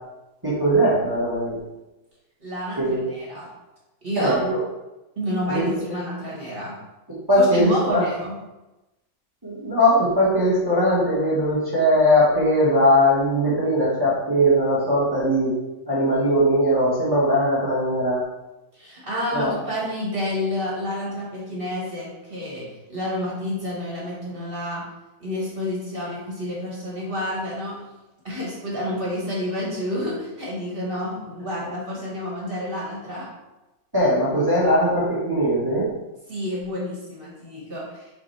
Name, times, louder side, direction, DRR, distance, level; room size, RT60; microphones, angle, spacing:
voice 1, 0.4-1.6 2.8-3.0 4.2-4.6 5.5-5.7 7.3-8.1 9.4-15.5 15.9-18.2 19.3-19.5 33.9-35.9, equal, 15° right, -8 dB, 1.6 m, -20 dB
voice 2, 2.4-3.5 4.0-4.4 5.1-6.7 7.3-8.4 18.7-24.8 25.2-27.8 28.2-33.3 36.3-38.0, left 1 dB, 40° right, -5 dB, 1.8 m, -29 dB
7.0 x 4.5 x 3.4 m, 1.0 s
omnidirectional pair, 1.6 m